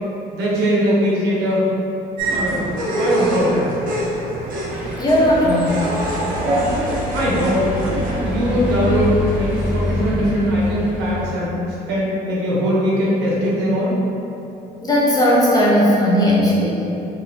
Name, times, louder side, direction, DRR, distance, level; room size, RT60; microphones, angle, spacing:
voice 1, 0.3-1.6 2.3-4.0 7.1-7.7 8.2-11.5 11.9-13.9, equal, 85° right, -6 dB, 1.1 m, -20 dB
sound 1, 2.2-10.0, right 1 dB, 55° right, 0.8 m, -25 dB
sound 2, 4.7-11.3, left 2 dB, 5° right, 0.7 m, -27 dB
voice 2, 5.0-5.9 14.8-16.8, equal, 20° left, -6 dB, 0.8 m, -16 dB
3.8 x 3.0 x 2.9 m, 2.9 s
cardioid pair, 110°, 17 cm